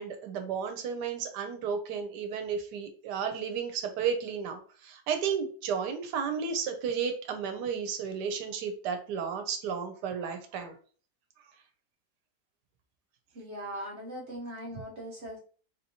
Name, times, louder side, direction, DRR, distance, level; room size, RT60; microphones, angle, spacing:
voice 1, 0.0-10.8, right 6 dB, 85° right, 7 dB, 1.2 m, -33 dB
voice 2, 13.3-15.4, equal, 50° right, -4 dB, 1.1 m, -40 dB
3.7 x 2.8 x 2.7 m, 0.42 s
omnidirectional pair, 1.7 m